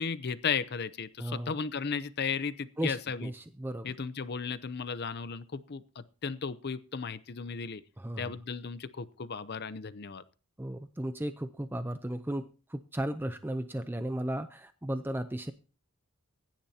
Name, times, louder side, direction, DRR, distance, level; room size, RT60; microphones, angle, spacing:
voice 1, 0.0-3.3 3.8-7.8 8.2-10.2, left 5 dB, 45° left, 14 dB, 0.6 m, -35 dB
voice 2, 1.2-1.5 2.8-3.9 8.0-8.3 10.6-15.5, right 1 dB, 10° right, 9 dB, 0.5 m, -35 dB
25.0 x 10.5 x 2.8 m, 0.36 s
head